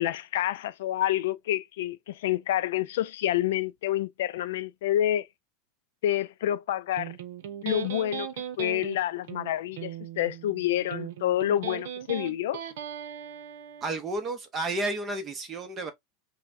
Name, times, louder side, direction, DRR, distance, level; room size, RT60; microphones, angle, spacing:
voice 1, 0.0-5.3 6.0-7.1 7.6-8.3 8.6-12.6, left 12 dB, 75° left, 0.4 m, -28 dB
Electric guitar, 7.0-13.9, right 9 dB, 75° right, 0.8 m, -38 dB
voice 2, 13.8-15.9, right 2 dB, 20° right, 0.8 m, -31 dB
5.6 x 2.2 x 2.6 m
supercardioid pair, 170°, 0 cm